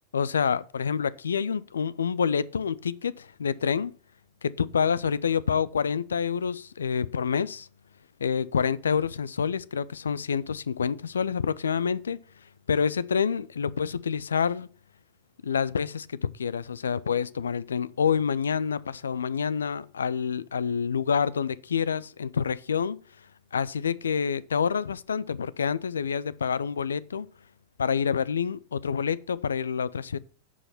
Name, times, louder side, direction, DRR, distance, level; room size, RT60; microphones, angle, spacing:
voice 1, 0.1-3.9 4.4-7.7 8.2-12.2 12.7-14.7 15.4-23.0 23.5-27.3 27.8-30.2, left 6 dB, 70° left, 0.4 m, -27 dB
9.9 x 4.9 x 5.8 m
figure-of-eight pair, 90°, 0 cm